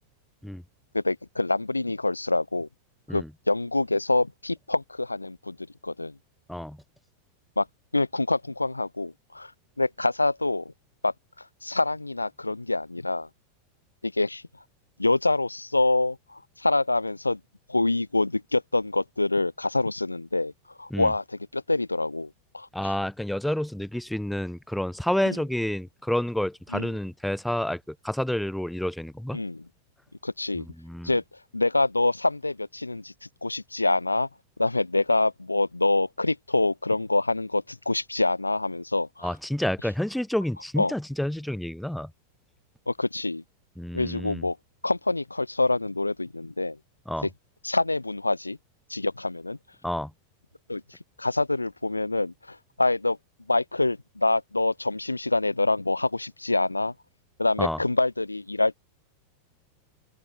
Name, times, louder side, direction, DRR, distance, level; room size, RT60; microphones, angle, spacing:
voice 1, 0.9-2.7 3.1-5.6 5.8-6.1 7.6-7.7 7.9-9.5 9.8-10.7 11.0-11.1 11.6-13.3 14.0-14.4 15.0-17.4 17.7-20.5 20.8-21.2 21.5-22.7 25.3-25.4 26.7-26.9 29.3-29.6 30.2-30.6 31.0-31.2 31.5-33.1 33.4-34.3 34.6-39.3 40.8-40.9 42.9-43.4 43.9-44.6 44.8-46.8 47.6-48.6 48.9-49.6 50.7-50.8 51.2-53.2 53.5-56.9 57.4-58.8, left 2 dB, 85° left, 1.3 m, -26 dB
voice 2, 22.7-29.4 30.6-31.1 39.2-42.1 43.8-44.5 47.1-47.3 49.8-50.1 57.6-57.8, left 1 dB, ahead, 0.6 m, -29 dB
open air
figure-of-eight pair, 90°, 0 cm